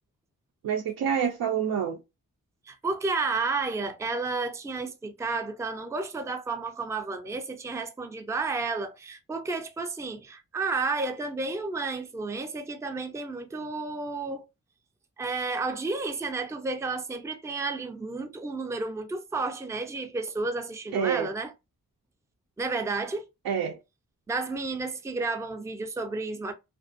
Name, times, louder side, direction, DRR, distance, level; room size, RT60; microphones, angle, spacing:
voice 1, 0.6-2.0 20.9-21.3 23.4-23.8, right 8 dB, 85° right, 0.5 m, -27 dB
voice 2, 2.7-14.4 15.2-21.5 22.6-23.3 24.3-26.5, right 3 dB, 10° right, 0.3 m, -31 dB
2.5 x 2.1 x 2.4 m
wide cardioid pair, 75°, 35 cm